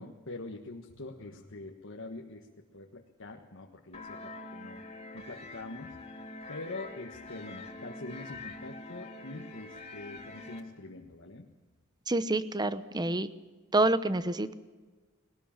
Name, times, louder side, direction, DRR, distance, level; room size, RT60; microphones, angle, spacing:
voice 1, 0.0-4.8 5.1-6.0 6.5-11.5, left 2 dB, 65° left, 1 dB, 1.5 m, -44 dB
sound 1, 3.9-10.6, left 2 dB, 30° left, 2.2 m, -45 dB
voice 2, 12.1-13.3 13.7-14.5, right 2 dB, 20° right, 14 dB, 0.9 m, -27 dB
21.0 x 18.0 x 7.4 m, 1.3 s
head